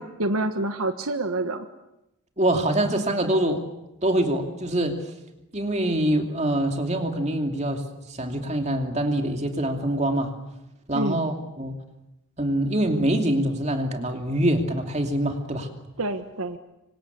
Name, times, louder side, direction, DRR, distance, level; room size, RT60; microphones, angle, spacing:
voice 1, 0.0-1.7 10.9-11.2 16.0-16.6, right 2 dB, 90° right, 7 dB, 1.5 m, -27 dB
voice 2, 2.4-3.6 4.0-5.1 5.5-10.3 10.9-11.7 12.4-15.7, right 1 dB, 30° right, 4 dB, 2.7 m, -24 dB
27.0 x 25.0 x 8.4 m, 0.92 s
head